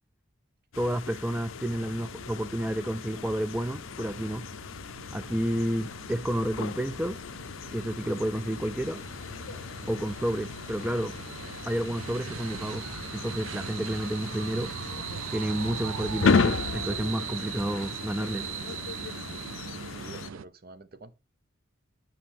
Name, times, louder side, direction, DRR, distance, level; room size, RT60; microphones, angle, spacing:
sound 1, 0.7-20.3, left 5 dB, 70° left, 0.5 m, -35 dB
voice 1, 0.8-4.5 5.1-7.2 7.7-9.0 9.9-11.2 11.6-12.9 13.1-14.8 15.3-18.5, right 1 dB, 5° right, 0.3 m, -30 dB
sound 2, 1.2-20.5, right 9 dB, 75° right, 0.4 m, -40 dB
voice 2, 20.0-21.1, right 3 dB, 50° right, 0.8 m, -47 dB
10.0 x 5.9 x 3.7 m
head